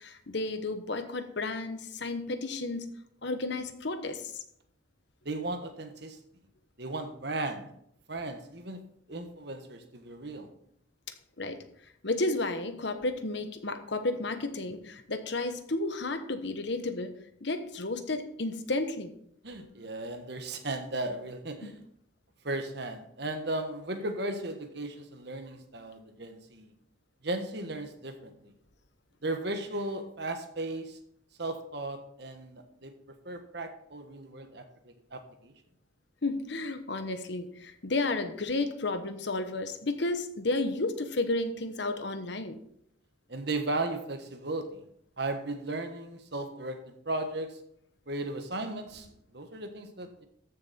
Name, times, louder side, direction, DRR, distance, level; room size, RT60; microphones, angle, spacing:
voice 1, 0.0-2.9 3.2-4.4 11.1-11.6 12.0-19.1 19.6-19.7 21.6-21.7 36.2-42.6, left 2 dB, 60° left, 9 dB, 1.0 m, -32 dB
voice 2, 5.2-6.2 6.8-7.7 8.1-8.8 9.1-10.5 19.4-21.8 22.4-26.7 27.2-28.5 29.2-31.0 31.4-35.5 43.3-44.8 45.2-47.6 48.1-49.1 49.3-50.3, right 2 dB, 55° right, 6 dB, 1.4 m, -36 dB
14.0 x 6.8 x 4.3 m, 0.70 s
head